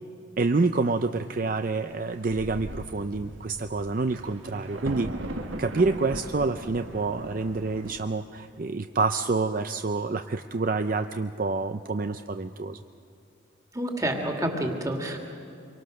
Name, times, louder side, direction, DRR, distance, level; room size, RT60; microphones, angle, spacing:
voice 1, 0.4-5.1 5.6-12.8, right 3 dB, 45° right, 8 dB, 0.5 m, -27 dB
Thunder, 1.9-2.0 2.3-8.0, right 1 dB, 80° right, 1.9 m, -38 dB
voice 2, 13.7-15.2, right 1 dB, 15° right, 2 dB, 2.4 m, -28 dB
26.5 x 23.5 x 6.5 m, 2.7 s
head